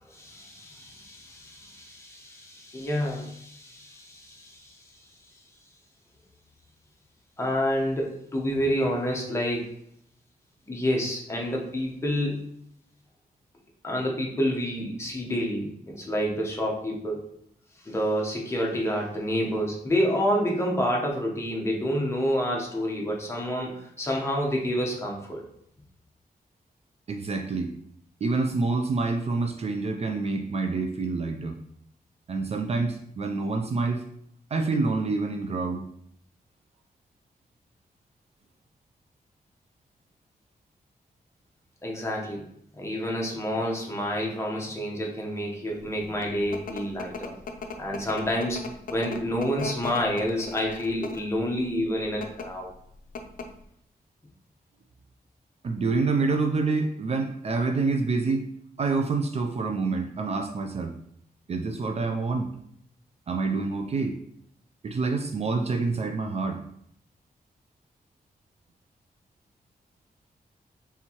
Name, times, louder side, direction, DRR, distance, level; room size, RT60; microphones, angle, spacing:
voice 1, 0.0-4.8 7.4-9.7 10.7-12.4 13.8-17.2 17.8-25.4 41.8-42.5 42.7-47.3 47.8-52.7, equal, 15° left, -2 dB, 0.8 m, -28 dB
voice 2, 27.1-27.7 28.2-31.6 32.3-34.0 34.5-35.8 55.6-58.5 58.8-60.9 61.5-62.5 63.3-64.2 64.8-66.6, right 3 dB, 45° right, 4 dB, 0.3 m, -27 dB
sound 1, 45.9-51.3 52.1-52.5 52.8-52.9 53.1-53.6, left 4 dB, 65° left, 0.5 m, -37 dB
4.4 x 3.5 x 2.8 m, 0.70 s
wide cardioid pair, 165°, 15 cm